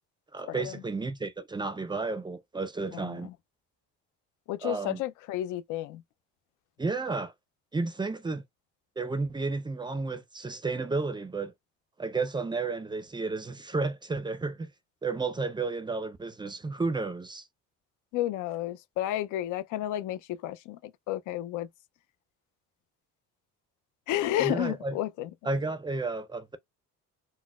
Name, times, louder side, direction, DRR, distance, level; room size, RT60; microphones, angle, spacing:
voice 1, 0.3-3.3 4.6-5.0 6.8-7.3 7.7-8.4 9.0-11.5 12.0-14.7 15.0-17.5 24.4-25.0 25.4-26.6, right 3 dB, 15° right, 0.4 m, -32 dB
voice 2, 4.5-6.0 18.1-20.8 21.1-21.7 24.1-25.3, left 13 dB, 80° left, 0.5 m, -31 dB
4.0 x 2.0 x 2.3 m
cardioid pair, 115°, 30 cm